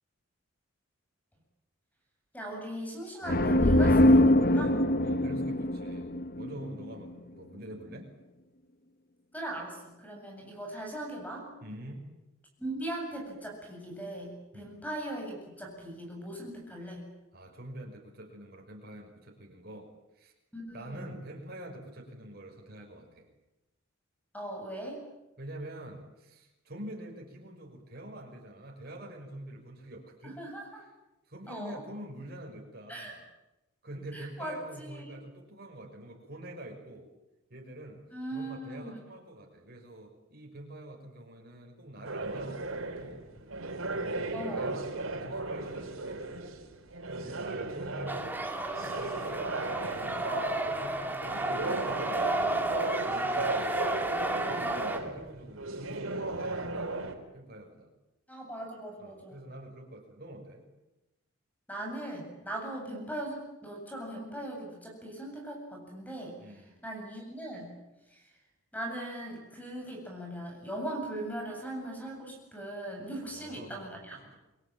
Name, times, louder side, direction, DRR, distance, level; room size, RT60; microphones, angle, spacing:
voice 1, 2.3-4.8 9.3-11.5 12.6-17.1 20.5-21.1 24.3-25.0 30.2-30.8 31.5-31.8 32.9-33.1 34.1-35.2 38.1-39.0 44.3-44.7 58.3-59.4 61.7-66.4 66.8-67.7 68.1-68.3 68.7-74.2, right 1 dB, 5° left, 1 dB, 7.9 m, -39 dB
sound 1, 3.3-6.9, left 1 dB, 45° left, 1.2 m, -23 dB
voice 2, 5.0-8.1 11.6-12.1 14.5-14.8 17.3-19.9 20.1-20.3 20.7-23.3 25.4-30.4 30.7-30.9 31.3-33.2 33.8-37.1 37.5-38.0 38.3-43.3 44.0-46.6 47.1-48.5 48.8-54.2 54.4-57.9 59.0-60.6 66.4-66.8 73.2-74.4, right 1 dB, 50° right, 0 dB, 6.1 m, -46 dB
sound 2, 42.0-57.1, right 2 dB, 80° right, 4.2 m, -36 dB
sound 3, 48.1-55.0, right 1 dB, 10° right, 2.6 m, -32 dB
28.5 x 22.5 x 9.0 m, 0.97 s
head